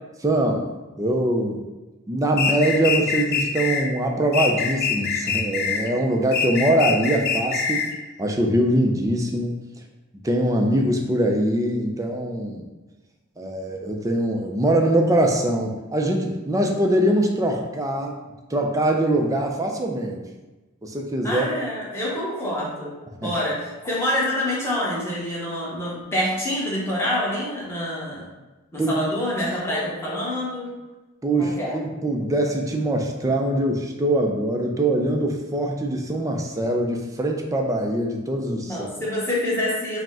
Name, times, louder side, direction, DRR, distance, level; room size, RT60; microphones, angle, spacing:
voice 1, 0.2-0.6 1.0-1.6 2.1-7.8 8.2-9.6 10.2-12.7 13.4-18.1 18.5-20.2 20.8-21.5 23.2-23.3 28.8-28.9 31.2-38.9, right 1 dB, 15° right, 2 dB, 0.4 m, -23 dB
sound 1, 2.4-3.8 4.3-5.9 6.3-7.9, left 6 dB, 45° left, 0.4 m, -24 dB
voice 2, 21.2-22.9 23.2-28.3 28.7-30.7 31.4-31.7 38.6-40.0, left 1 dB, 10° left, -6 dB, 1.0 m, -26 dB
4.9 x 2.1 x 3.6 m, 1.1 s
head